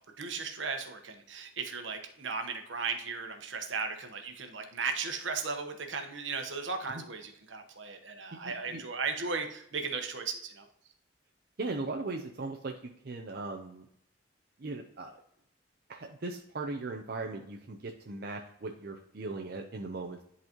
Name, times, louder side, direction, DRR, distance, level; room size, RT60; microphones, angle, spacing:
voice 1, 0.2-10.6, right 4 dB, 75° right, 5 dB, 1.0 m, -36 dB
voice 2, 8.4-8.8 11.6-13.9 14.6-15.2 15.9-20.2, right 3 dB, 50° right, 2 dB, 0.6 m, -38 dB
10.5 x 4.0 x 2.9 m, 0.74 s
head